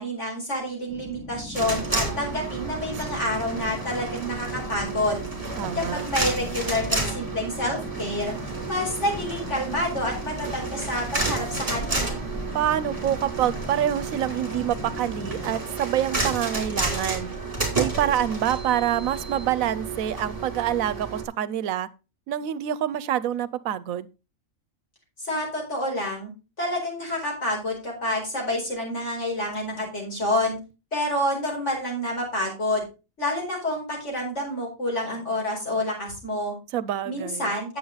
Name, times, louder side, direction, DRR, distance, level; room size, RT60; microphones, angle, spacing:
voice 1, 0.0-5.2 5.7-12.1 25.2-26.3 26.6-30.6 30.9-32.8 33.2-36.5 37.0-37.8, left 1 dB, 60° left, 4.8 m, -28 dB
sound 1, 0.9-15.5, left 1 dB, 5° left, 2.5 m, -40 dB
sound 2, 1.5-21.2, right 3 dB, 25° right, 3.0 m, -31 dB
voice 2, 5.6-6.1 12.5-17.3 17.7-21.9 22.3-24.1 36.7-37.5, right 11 dB, 85° right, 1.1 m, -26 dB
9.4 x 7.5 x 3.9 m
omnidirectional pair, 1.4 m